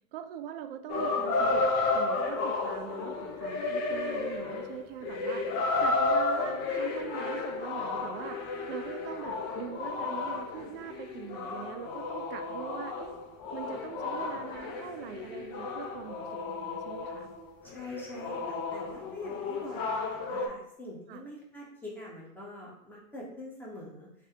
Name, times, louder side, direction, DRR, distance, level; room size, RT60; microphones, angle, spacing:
voice 1, 0.1-1.7 1.9-5.5 5.8-13.2 13.5-17.3 21.1-21.2, right 9 dB, 45° right, 7 dB, 0.4 m, -42 dB
sound 1, 0.9-17.4 17.7-20.5, left 3 dB, 40° left, 0.7 m, -32 dB
voice 2, 17.6-24.3, left 1 dB, 5° left, -4 dB, 1.0 m, -45 dB
3.3 x 2.8 x 3.4 m, 0.77 s
hypercardioid pair, 105°, 42 cm